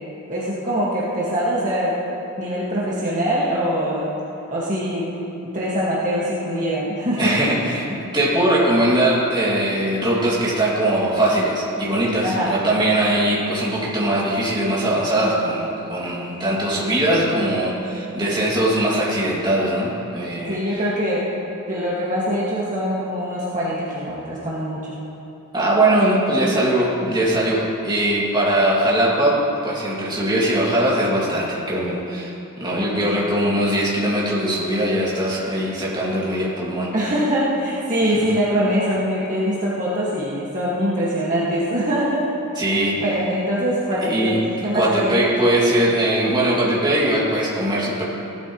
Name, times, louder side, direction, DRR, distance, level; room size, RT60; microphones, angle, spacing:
voice 1, 0.3-1.9 2.4-4.1 4.5-5.1 5.5-7.4 12.2-12.5 20.5-21.4 21.7-25.0 27.0-27.1 32.7-33.0 36.9-42.2 43.0-45.3, equal, 35° right, -8 dB, 1.9 m, -23 dB
voice 2, 7.2-20.6 25.5-36.9 42.6-43.0 44.0-44.4 44.7-48.1, right 1 dB, 20° right, -6 dB, 2.5 m, -21 dB
17.5 x 12.5 x 3.1 m, 2.8 s
head